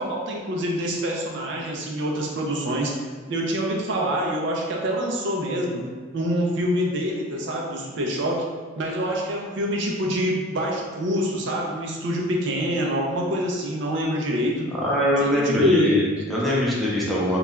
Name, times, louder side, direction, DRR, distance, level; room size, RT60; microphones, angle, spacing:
voice 1, 0.0-5.8 6.1-8.4 8.8-14.7 15.2-15.9, equal, 65° right, -1 dB, 0.4 m, -26 dB
voice 2, 14.8-17.4, left 1 dB, ahead, -7 dB, 0.5 m, -22 dB
2.3 x 2.2 x 3.0 m, 1.5 s
head